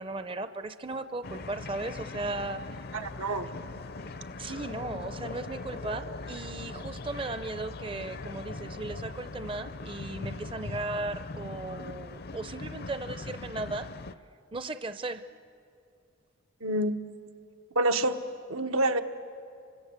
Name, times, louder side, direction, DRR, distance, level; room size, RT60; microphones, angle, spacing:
voice 1, 0.0-2.8 3.6-3.8 4.4-13.9 14.5-15.2, right 2 dB, 25° right, 11 dB, 0.5 m, -36 dB
sound 1, 1.2-14.1, left 3 dB, 45° left, 0.6 m, -40 dB
voice 2, 2.9-3.5 16.6-17.0 17.7-18.2 18.5-19.0, right 1 dB, 90° right, 5 dB, 1.3 m, -27 dB
28.5 x 24.5 x 8.1 m, 2.4 s
head